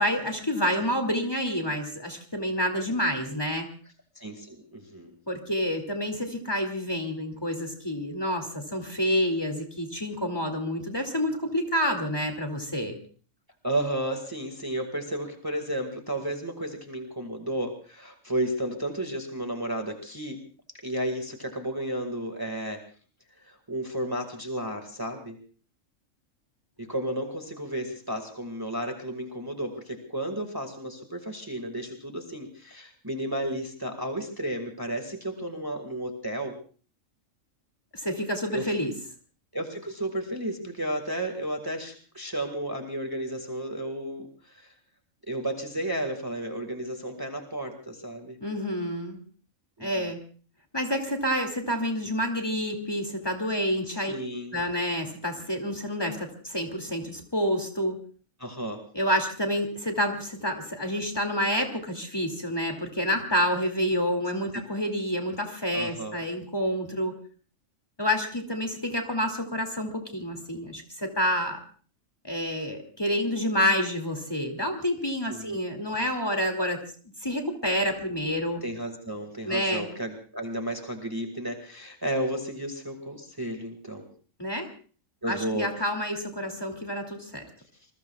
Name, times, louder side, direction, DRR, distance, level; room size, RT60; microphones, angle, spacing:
voice 1, 0.0-3.7 5.3-13.0 37.9-38.9 48.4-49.2 49.8-50.2 50.7-54.1 54.5-58.0 58.9-67.2 68.0-71.6 72.2-76.8 77.2-78.6 79.4-79.9 84.4-84.7 85.3-87.4, equal, 20° left, 3 dB, 2.6 m, -28 dB
voice 2, 4.2-5.1 13.6-20.4 20.8-22.8 23.4-25.4 26.8-36.6 38.5-38.7 39.5-44.7 45.3-48.4 49.8-50.1 54.1-54.7 58.4-58.8 65.7-66.2 75.3-75.6 76.0-76.1 78.6-84.1 85.2-85.7, right 1 dB, 15° right, 4 dB, 2.0 m, -33 dB
27.0 x 21.5 x 2.4 m, 0.41 s
omnidirectional pair, 1.3 m